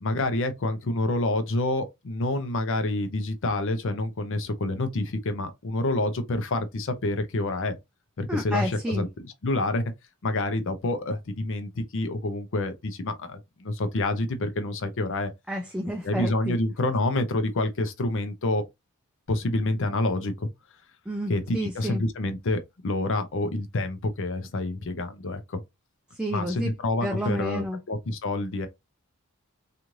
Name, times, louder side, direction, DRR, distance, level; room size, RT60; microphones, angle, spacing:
voice 1, 0.0-7.8 8.2-9.8 10.2-15.3 16.0-18.6 19.3-20.5 21.3-25.6 26.3-28.7, left 2 dB, 60° left, 0.6 m, -28 dB
voice 2, 8.3-9.1 15.5-16.6 21.1-22.0 26.1-26.7 27.0-27.8, equal, 5° right, 0.3 m, -30 dB
3.0 x 2.5 x 2.5 m
head